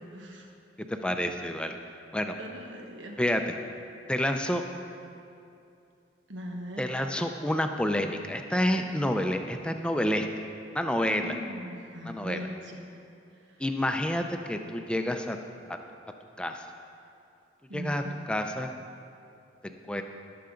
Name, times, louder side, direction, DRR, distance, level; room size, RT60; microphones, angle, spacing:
voice 1, 0.1-0.5 2.4-3.2 6.3-6.8 11.1-12.8 17.7-18.2, equal, 85° right, 2 dB, 1.4 m, -40 dB
voice 2, 0.9-1.8 2.1-2.3 3.2-3.6 4.1-4.6 6.8-10.3 10.7-11.4 12.0-12.5 13.6-15.4 15.7-15.8 16.4-16.7 17.7-18.8 19.6-20.0, left 1 dB, 5° left, 5 dB, 0.5 m, -29 dB
20.0 x 6.8 x 3.9 m, 2.6 s
head